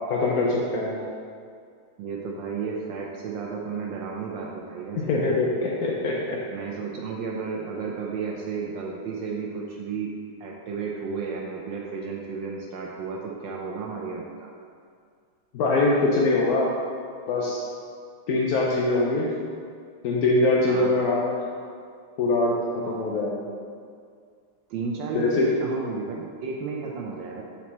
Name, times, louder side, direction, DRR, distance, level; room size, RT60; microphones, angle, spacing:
voice 1, 0.1-1.0 5.0-6.4 15.5-16.7 17.3-17.6 18.3-19.3 20.0-21.4 22.2-23.5 25.1-25.5, left 2 dB, 65° left, -3 dB, 0.9 m, -23 dB
voice 2, 2.0-5.0 6.5-10.1 10.4-14.5 20.7-20.9 24.7-27.4, right 5 dB, 70° right, -1 dB, 1.2 m, -33 dB
7.1 x 4.5 x 4.2 m, 2.2 s
omnidirectional pair, 2.3 m